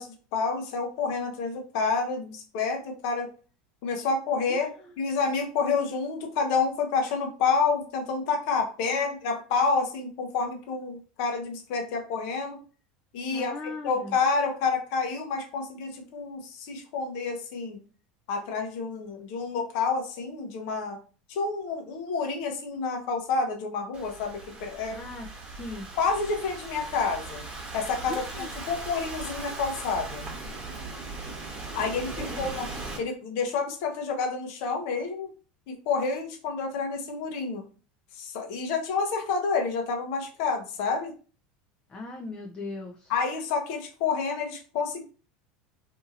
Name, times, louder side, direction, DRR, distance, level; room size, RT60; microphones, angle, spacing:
voice 1, 0.0-3.3 3.8-12.6 13.1-13.5 13.8-17.8 18.3-21.0 21.3-25.0 26.0-27.4 27.7-30.3 31.7-32.7 33.0-35.3 35.7-37.6 38.1-41.1 43.1-45.0, left 4 dB, 65° left, 3 dB, 0.8 m, -29 dB
voice 2, 4.5-4.9 8.9-9.3 13.3-14.1 24.9-25.9 28.1-28.5 32.2-32.5 41.9-43.1, left 2 dB, 25° left, 0 dB, 0.5 m, -39 dB
Thunderstorm / Rain, 23.9-33.0, right 3 dB, 25° right, 1.2 m, -39 dB
2.7 x 2.7 x 2.4 m, 0.38 s
supercardioid pair, 100°, 4 cm